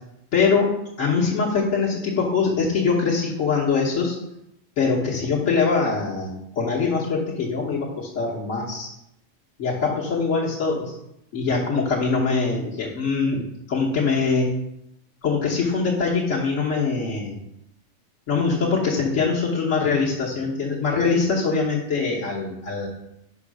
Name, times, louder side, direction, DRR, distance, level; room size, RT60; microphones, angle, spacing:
voice 1, 0.3-4.1 4.8-8.9 9.6-10.9 11.3-13.4 13.7-14.5 15.2-17.4 18.3-22.9, left 4 dB, 70° left, -6 dB, 1.5 m, -23 dB
5.4 x 4.4 x 6.2 m, 0.84 s
omnidirectional pair, 1.3 m